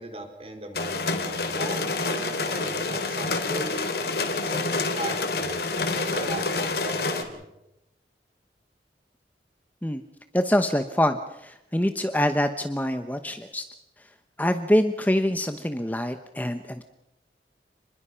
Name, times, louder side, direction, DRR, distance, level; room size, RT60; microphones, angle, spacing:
voice 1, 0.0-3.9 4.4-7.4, right 2 dB, 35° right, 5 dB, 4.3 m, -38 dB
sound 1, 0.7-7.2, left 3 dB, 65° left, 3.3 m, -28 dB
voice 2, 10.3-13.6 14.4-16.8, left 1 dB, 10° left, 8 dB, 1.0 m, -25 dB
29.5 x 21.5 x 5.8 m, 0.87 s
head